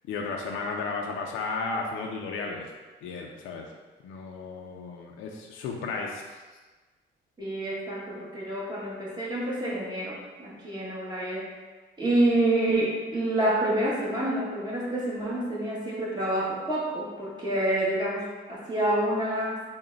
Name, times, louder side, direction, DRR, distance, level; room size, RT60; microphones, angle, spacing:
voice 1, 0.1-2.7 3.0-3.7 4.0-6.4, left 4 dB, 85° left, 0 dB, 0.4 m, -34 dB
voice 2, 7.4-11.5 12.0-19.6, right 1 dB, 20° right, -6 dB, 1.3 m, -28 dB
3.9 x 2.1 x 3.8 m, 1.3 s
cardioid pair, 90°, 20 cm